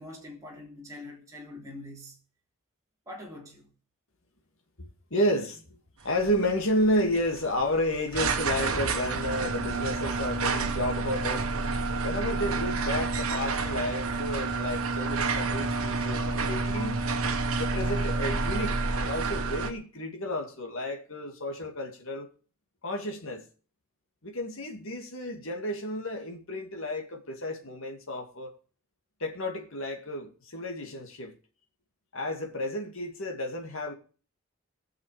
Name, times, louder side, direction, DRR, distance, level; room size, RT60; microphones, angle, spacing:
voice 1, 0.0-2.2 3.1-3.7, left 1 dB, 15° right, 3.3 m, -44 dB
voice 2, 4.8-5.8 6.0-11.5 12.0-17.0 17.6-22.3 22.8-23.5 24.2-28.5 29.2-31.4 32.1-33.9, left 1 dB, 65° left, 2.3 m, -31 dB
sound 1, 6.0-19.7, right 3 dB, 75° right, 1.3 m, -29 dB
19.5 x 6.6 x 5.0 m
head